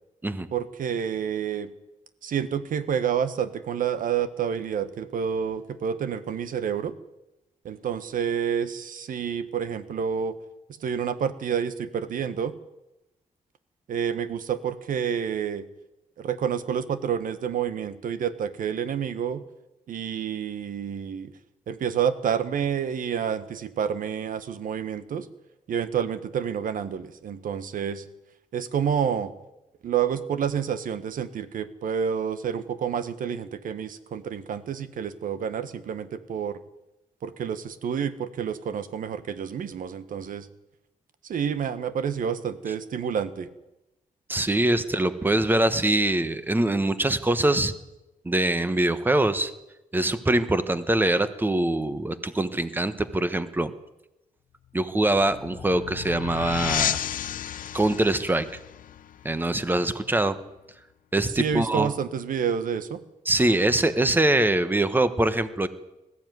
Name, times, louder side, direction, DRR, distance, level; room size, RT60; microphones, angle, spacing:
voice 1, 0.5-1.7 2.2-6.9 7.6-10.4 10.8-12.6 13.9-15.7 16.2-19.5 19.9-21.3 21.7-25.3 25.7-28.0 28.5-29.3 29.8-36.6 37.2-40.5 41.2-43.5 61.3-63.0, right 8 dB, 80° right, 12 dB, 1.5 m, -29 dB
voice 2, 44.3-47.7 48.2-49.5 49.9-53.7 54.7-57.0 57.7-58.5 59.2-60.4 61.1-61.9 63.3-65.7, right 1 dB, 15° right, 12 dB, 1.4 m, -23 dB
sound 1, 54.9-60.2, left 10 dB, 80° left, 0.8 m, -33 dB
20.0 x 15.0 x 9.5 m, 0.95 s
cardioid pair, 115°, 14 cm